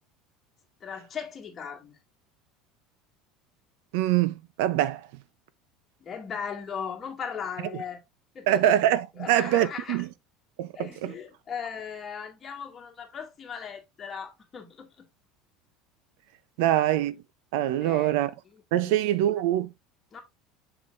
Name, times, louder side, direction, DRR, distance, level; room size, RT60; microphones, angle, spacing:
voice 1, 0.8-2.0 6.0-8.0 8.3-8.8 9.2-10.0 10.7-15.0 17.8-18.2 18.8-19.0 20.1-20.2, left 7 dB, 20° left, 2.2 m, -37 dB
voice 2, 3.9-5.0 8.5-10.1 10.6-11.1 16.6-17.1 17.5-18.3 18.7-19.7, right 13 dB, 70° right, 0.7 m, -24 dB
7.6 x 5.9 x 2.6 m
cardioid pair, 165°, 0 cm